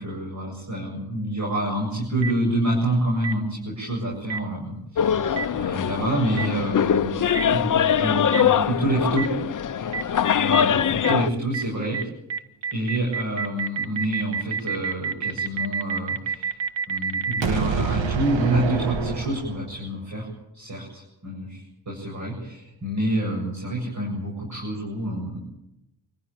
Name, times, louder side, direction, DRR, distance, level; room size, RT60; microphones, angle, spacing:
voice 1, 0.0-9.3 10.3-12.1 12.7-16.6 16.9-20.3 20.5-25.4, right 1 dB, 35° right, -1 dB, 7.9 m, -27 dB
Boom, 2.2-2.3 3.2-3.3 4.3-4.4 5.4-5.5 6.4-6.5 7.3-7.4 8.3-8.4 9.2-9.3 9.9-10.0 10.5-10.6 11.0-11.1 11.5-11.6 11.9-12.0 12.3-19.9, right 5 dB, 70° right, 1.9 m, -27 dB
sound 1, 5.0-11.3, left 8 dB, 40° left, 0.9 m, -22 dB
27.5 x 15.5 x 8.7 m, 0.90 s
cardioid pair, 110°, 46 cm